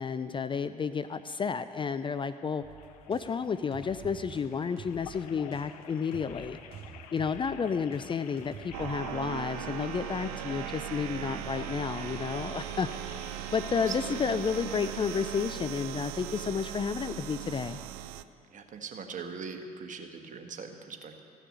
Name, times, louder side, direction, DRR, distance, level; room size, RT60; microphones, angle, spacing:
voice 1, 0.0-2.6 3.1-6.6 7.1-12.9 13.5-17.8, left 6 dB, 25° left, 12 dB, 0.4 m, -31 dB
sound 1, 1.0-15.5, left 9 dB, 80° left, 0.6 m, -51 dB
sound 2, 2.6-8.0 8.4-8.9, right 6 dB, 60° right, 2.5 m, -48 dB
sound 3, 8.7-18.2, right 13 dB, 75° right, 0.5 m, -38 dB
voice 2, 13.9-14.2 18.5-21.2, right 5 dB, 40° right, 4 dB, 1.5 m, -41 dB
14.5 x 6.6 x 9.2 m, 2.4 s
hypercardioid pair, 55°, 19 cm